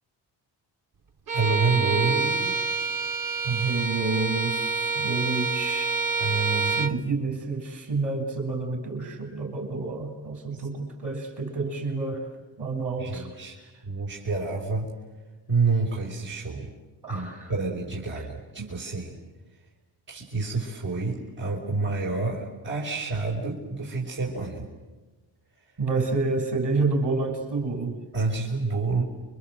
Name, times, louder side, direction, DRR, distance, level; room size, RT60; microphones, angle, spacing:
Bowed string instrument, 1.3-7.0, right 4 dB, 45° right, 1.0 m, -27 dB
voice 1, 1.3-3.1 6.2-6.8 10.5-10.7 13.0-13.6 13.8-14.9 15.5-16.7 17.1-19.2 20.1-24.7 28.1-29.0, right 4 dB, 80° right, -6 dB, 5.3 m, -28 dB
voice 2, 3.4-5.9 6.7-12.3 12.6-13.3 13.6-13.7 17.0-17.5 18.6-18.7 25.8-27.9, right 3 dB, 65° right, 4 dB, 6.6 m, -29 dB
29.5 x 24.5 x 7.8 m, 1.2 s
supercardioid pair, 50°, 45 cm